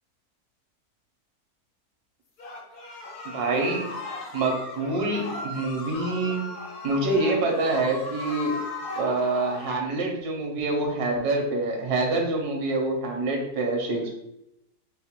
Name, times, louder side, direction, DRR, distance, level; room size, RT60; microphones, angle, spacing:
sound 1, 2.4-9.8, left 2 dB, 85° left, 1.5 m, -37 dB
voice 1, 3.2-3.8 4.3-6.5 6.8-8.5 9.0-14.1, right 2 dB, 90° right, 2 dB, 1.5 m, -26 dB
4.3 x 2.2 x 4.3 m, 0.83 s
omnidirectional pair, 1.6 m